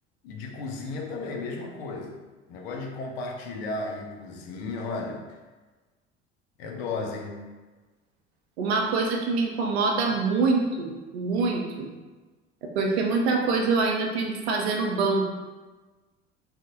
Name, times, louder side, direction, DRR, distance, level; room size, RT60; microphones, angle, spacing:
voice 1, 0.2-2.2 2.5-5.4 6.6-7.5, left 3 dB, 70° left, 2 dB, 0.5 m, -34 dB
voice 2, 8.6-11.9 12.6-15.3, right 4 dB, 75° right, 1 dB, 0.5 m, -25 dB
2.7 x 2.0 x 2.8 m, 1.3 s
figure-of-eight pair, 65°, 33 cm